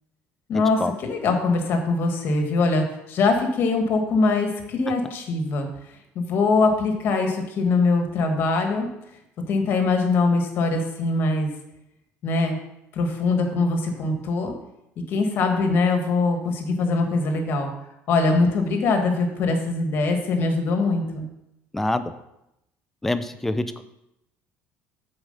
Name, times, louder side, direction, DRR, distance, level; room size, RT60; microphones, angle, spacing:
voice 1, 0.5-5.7 6.1-8.9 9.5-11.5 12.2-12.6 12.9-14.5 15.1-17.7 18.1-21.3, left 3 dB, 45° left, 4 dB, 1.4 m, -22 dB
voice 2, 21.7-22.1 23.0-23.8, left 1 dB, 5° left, 10 dB, 0.4 m, -25 dB
7.3 x 4.8 x 6.5 m, 0.85 s
cardioid pair, 160°, 5 cm